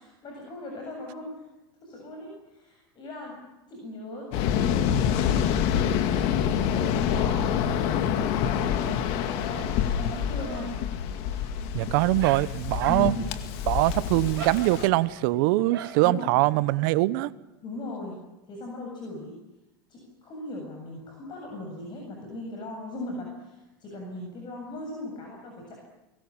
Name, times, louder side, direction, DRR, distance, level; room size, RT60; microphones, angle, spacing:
voice 1, 0.0-1.4 1.8-3.4 3.7-6.0 6.5-10.8 12.9-13.2 16.0-16.3 17.6-18.2 18.5-19.4 19.9-25.8, left 1 dB, 40° left, 1 dB, 7.8 m, -39 dB
Waves surf, 4.3-14.9, left 8 dB, 60° left, 2.2 m, -27 dB
Dog, 8.6-16.8, right 10 dB, 80° right, 3.5 m, -44 dB
voice 2, 11.7-13.1 13.7-17.3, right 19 dB, 65° right, 18 dB, 1.0 m, -23 dB
23.0 x 20.0 x 8.8 m, 1.0 s
hypercardioid pair, 100°, 12 cm